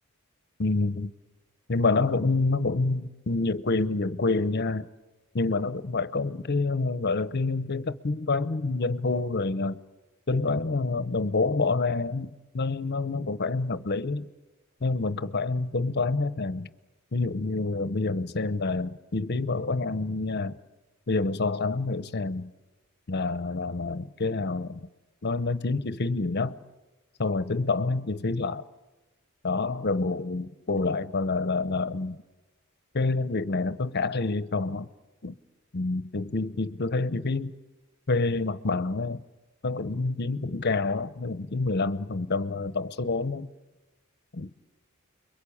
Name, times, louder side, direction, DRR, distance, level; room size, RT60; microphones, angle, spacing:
voice 1, 0.6-1.1 1.7-4.9 5.3-9.8 10.3-12.3 12.5-14.3 14.8-16.7 17.1-20.6 21.1-22.5 23.1-24.9 25.2-26.6 27.2-28.7 29.4-32.2 32.9-34.9 35.2-35.4 35.7-37.5 38.1-39.2 39.6-43.5 44.3-44.5, left 3 dB, 50° left, 0.9 m, -27 dB
30.0 x 23.0 x 8.6 m
head